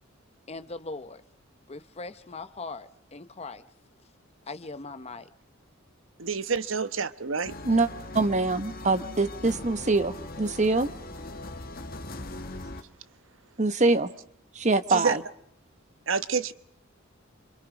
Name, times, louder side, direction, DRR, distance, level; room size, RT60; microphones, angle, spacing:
voice 1, 0.5-1.2 1.7-3.6 4.5-5.3, left 3 dB, 30° left, 0.9 m, -40 dB
voice 2, 6.2-7.5 14.9-15.2 16.1-16.5, right 5 dB, 70° right, 1.1 m, -28 dB
sound 1, 7.4-12.8, left 2 dB, 45° left, 1.7 m, -40 dB
voice 3, 8.1-10.9 13.6-14.1 14.5-15.2, right 3 dB, 35° right, 1.1 m, -24 dB
28.5 x 26.5 x 5.0 m
head